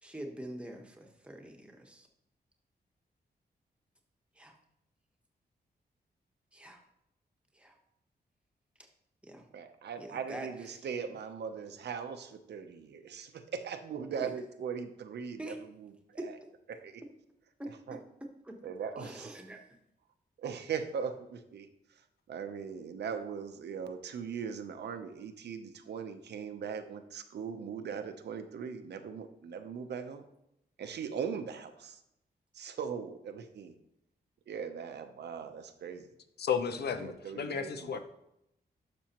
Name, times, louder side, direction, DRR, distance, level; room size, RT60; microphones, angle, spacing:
voice 1, 0.0-2.1 4.4-4.5 6.5-6.8 7.5-7.7 9.2-9.5 10.0-10.8 14.2-14.3 15.4-15.6 16.2-16.3 18.4-18.6 19.0-19.6 37.5-37.7, right 1 dB, 5° right, 2 dB, 1.1 m, -44 dB
voice 2, 9.5-16.4 16.7-17.0 17.9-18.0 18.6-19.3 20.4-21.7 22.3-30.2 30.8-32.0 32.5-33.7 34.5-36.1 37.0-38.0, right 6 dB, 85° right, 7 dB, 0.8 m, -40 dB
voice 3, 36.4-38.0, left 7 dB, 75° left, 9 dB, 0.7 m, -33 dB
12.0 x 6.1 x 3.0 m, 0.82 s
wide cardioid pair, 140°, 17 cm